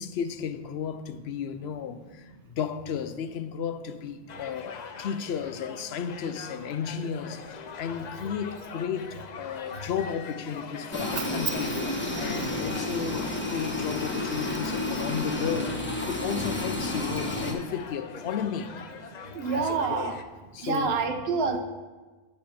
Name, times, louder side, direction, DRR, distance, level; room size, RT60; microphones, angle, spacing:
voice 1, 0.0-18.7 19.5-20.1 20.5-21.0, left 7 dB, 85° left, 0.9 m, -34 dB
sound 1, 4.3-20.2, left 6 dB, 50° left, 0.6 m, -43 dB
sound 2, 10.9-17.5, left 2 dB, 10° left, 1.1 m, -31 dB
voice 2, 19.3-20.2 20.6-21.6, right 5 dB, 80° right, 1.0 m, -27 dB
8.6 x 5.5 x 5.7 m
omnidirectional pair, 1.0 m